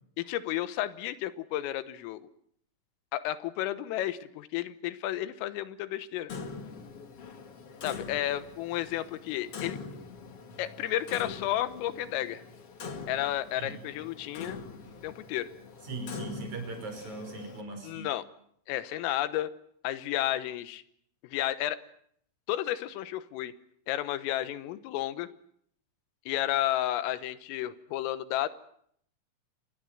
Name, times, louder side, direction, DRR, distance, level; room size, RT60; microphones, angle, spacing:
voice 1, 0.2-2.3 3.1-6.3 7.8-9.8 10.6-12.4 13.1-14.6 15.0-15.5 17.8-18.2 18.7-19.5 19.8-20.8 21.2-21.8 22.5-23.5 23.9-25.3 26.3-28.5, left 13 dB, 85° left, 13 dB, 3.8 m, -32 dB
Clock, 6.3-17.6, left 5 dB, 50° left, 1.8 m, -43 dB
voice 2, 15.8-18.1, right 3 dB, 35° right, 6 dB, 6.4 m, -39 dB
27.0 x 21.0 x 7.9 m, 0.68 s
omnidirectional pair, 5.8 m